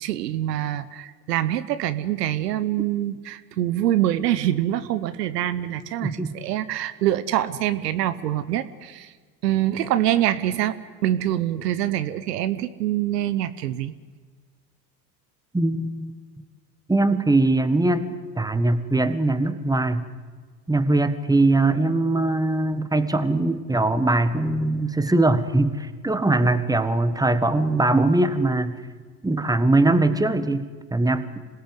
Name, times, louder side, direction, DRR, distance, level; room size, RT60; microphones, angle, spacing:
voice 1, 0.0-9.1 9.4-10.8 11.0-13.9, right 12 dB, 75° right, 13 dB, 1.1 m, -25 dB
voice 2, 6.0-6.3 15.5-16.1 16.9-18.1 18.4-20.1 20.7-28.8 29.2-31.4, right 2 dB, 10° right, 11 dB, 1.6 m, -21 dB
26.5 x 17.5 x 8.1 m, 1.5 s
hypercardioid pair, 70°, 48 cm